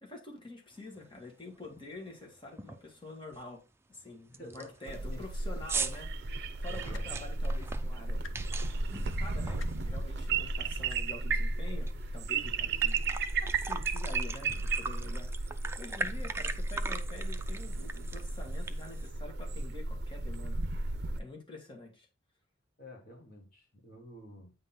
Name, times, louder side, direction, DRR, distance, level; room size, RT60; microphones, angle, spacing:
voice 1, 0.0-3.6 3.9-8.2 9.1-13.1 13.4-15.3 15.8-22.1, left 2 dB, 25° left, 1.8 m, -47 dB
sound 1, 1.0-1.1 1.5-1.8 2.1-2.2 2.6-2.9 3.3-3.4 3.9-4.0 4.3-10.3 10.6-11.9 12.3-12.4 12.6-19.1, right 4 dB, 15° right, 0.4 m, -41 dB
voice 2, 4.3-5.2 5.5-5.6 6.7-7.1 16.0-16.3 22.8-24.5, left 1 dB, 45° left, 1.6 m, -50 dB
sound 2, 4.9-21.2, right 3 dB, 55° right, 0.6 m, -34 dB
sound 3, 6.9-7.1 8.2-8.3 9.6-9.7 10.9-11.0 12.2-12.3, left 5 dB, 85° left, 0.8 m, -47 dB
8.8 x 3.8 x 4.3 m
head